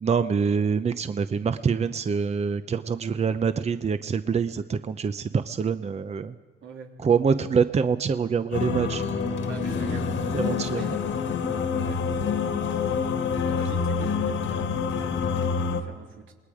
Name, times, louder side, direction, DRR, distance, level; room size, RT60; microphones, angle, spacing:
voice 1, 0.0-6.3 7.0-9.0 10.3-10.9, right 6 dB, 35° right, 11 dB, 0.7 m, -25 dB
voice 2, 6.6-6.9 9.5-10.1 10.7-11.1 11.8-12.0 13.4-16.3, right 5 dB, 80° right, 2 dB, 3.1 m, -43 dB
sound 1, 8.5-15.8, left 5 dB, 70° left, 1.8 m, -27 dB
27.5 x 20.0 x 5.0 m, 1.4 s
cardioid pair, 90°, 20 cm